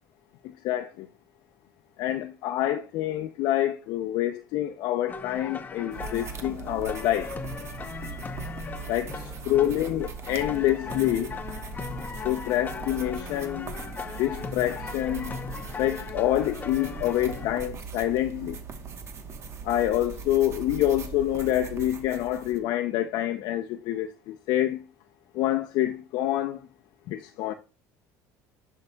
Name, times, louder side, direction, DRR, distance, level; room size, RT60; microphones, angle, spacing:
voice 1, 0.6-1.1 2.0-7.3 8.9-11.4 12.2-13.7 14.2-15.4 15.8-18.6 19.6-24.8 25.3-26.6 27.1-27.5, left 13 dB, 65° left, 0.5 m, -27 dB
sound 1, 5.1-17.5, left 5 dB, 25° left, 0.7 m, -38 dB
sound 2, 5.9-22.6, right 5 dB, 40° right, 1.1 m, -40 dB
10.5 x 5.4 x 2.3 m
cardioid pair, 115°, 7 cm